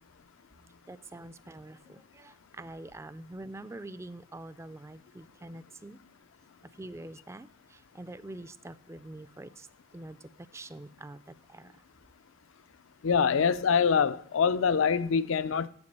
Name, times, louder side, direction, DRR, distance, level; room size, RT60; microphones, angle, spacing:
voice 1, 0.9-6.0 6.8-9.7 9.9-11.2 11.5-11.7, right 2 dB, 15° right, 0.3 m, -45 dB
voice 2, 13.0-15.7, left 6 dB, 70° left, 0.4 m, -25 dB
9.7 x 7.2 x 5.4 m
head